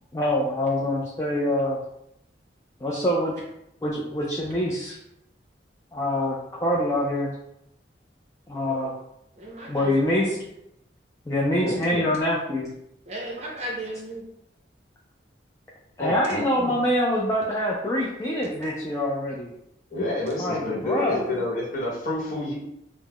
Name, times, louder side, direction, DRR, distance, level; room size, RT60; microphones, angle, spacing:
voice 1, 0.1-1.8 2.8-3.3 3.8-5.0 5.9-7.3 8.5-8.9 9.7-10.4 11.3-12.7 16.0-19.5 20.4-21.2, left 1 dB, 15° left, -4 dB, 0.3 m, -25 dB
voice 2, 9.4-10.4 13.1-14.2 20.9-21.4, equal, 35° right, -2 dB, 0.6 m, -34 dB
voice 3, 11.6-12.0 16.0-16.7 19.9-22.5, left 1 dB, 45° left, -6 dB, 0.9 m, -29 dB
2.3 x 2.0 x 3.5 m, 0.79 s
head